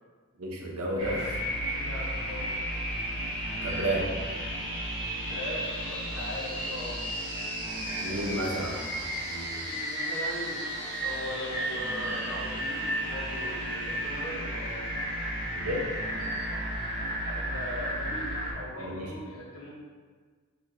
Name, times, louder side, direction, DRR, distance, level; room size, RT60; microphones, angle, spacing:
voice 1, 0.4-1.4 3.6-4.1 8.0-9.6 15.5-15.8 18.8-19.1, right 1 dB, 90° right, -1 dB, 0.9 m, -32 dB
sound 1, 1.0-18.5, equal, 20° right, 1.2 m, -33 dB
voice 2, 1.7-2.5 5.3-6.9 8.1-8.8 9.6-10.6 11.0-14.9 17.2-19.7, left 1 dB, 70° left, -4 dB, 1.1 m, -40 dB
4.5 x 4.2 x 2.7 m, 1.5 s
head